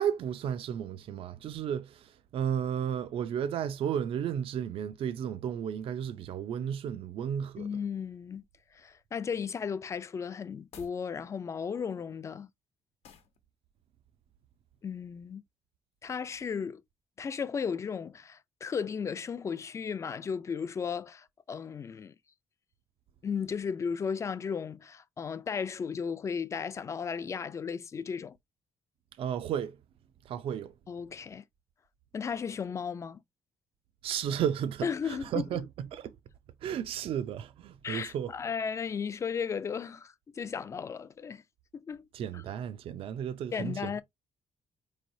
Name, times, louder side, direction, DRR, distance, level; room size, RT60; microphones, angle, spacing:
voice 1, 0.0-7.7 29.2-29.8 30.3-30.7 34.0-36.1 36.6-38.3 42.1-44.0, right 9 dB, 65° right, 0.4 m, -33 dB
voice 2, 7.6-8.4 8.7-12.5 14.8-15.4 16.0-16.8 17.2-22.1 23.2-28.4 30.9-31.4 32.1-33.2 34.8-35.6 37.8-41.4 41.7-42.1 42.3-42.4 43.5-44.0, left 6 dB, 30° left, 0.3 m, -35 dB
sound 1, 10.6-11.0 13.0-13.4, left 7 dB, 90° left, 0.9 m, -52 dB
4.5 x 3.2 x 2.6 m
cardioid pair, 140°, 10 cm